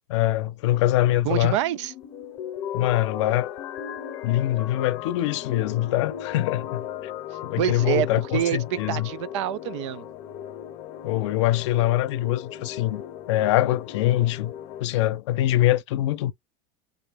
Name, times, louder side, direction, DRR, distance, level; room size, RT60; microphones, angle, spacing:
voice 1, 0.1-1.6 2.7-3.5 4.2-6.8 7.4-9.1 11.0-13.0 13.3-14.5 14.8-16.3, left 14 dB, 80° left, 0.6 m, -23 dB
voice 2, 1.2-1.9 7.6-8.1 8.3-8.6 8.9-10.0, right 12 dB, 85° right, 0.4 m, -26 dB
sound 1, 1.6-14.8, left 10 dB, 40° left, 0.7 m, -37 dB
3.6 x 2.2 x 3.5 m
supercardioid pair, 165°, 15 cm